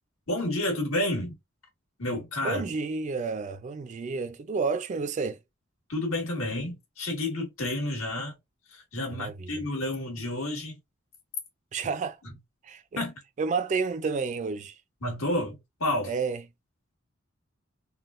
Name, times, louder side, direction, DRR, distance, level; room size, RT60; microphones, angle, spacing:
voice 1, 0.3-1.4 2.0-2.7 5.9-8.3 8.9-10.7 13.0-13.1 15.0-15.5 15.8-16.1, left 1 dB, 85° left, 1.6 m, -30 dB
voice 2, 2.4-5.4 9.1-9.5 11.7-12.2 12.6-13.0 13.4-14.8 16.0-16.4, right 4 dB, 35° right, 0.3 m, -30 dB
3.7 x 2.1 x 2.4 m
head